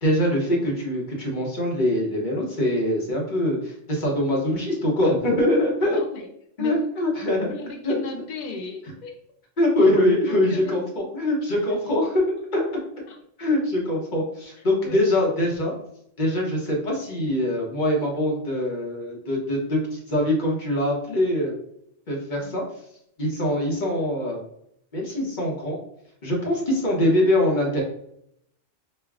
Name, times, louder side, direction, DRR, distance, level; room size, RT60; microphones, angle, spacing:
voice 1, 0.0-6.0 6.6-7.5 7.8-8.0 9.6-12.6 13.4-15.7 16.2-21.5 22.1-22.6 23.2-24.4 24.9-25.8 26.2-27.8, left 1 dB, 40° left, -1 dB, 1.0 m, -23 dB
voice 2, 5.9-6.3 6.6-6.8 7.2-9.2 10.2-10.8 13.1-13.2 14.6-15.0 22.4-22.6, left 4 dB, 70° left, 2 dB, 0.4 m, -37 dB
5.3 x 2.2 x 2.3 m, 0.73 s
omnidirectional pair, 1.3 m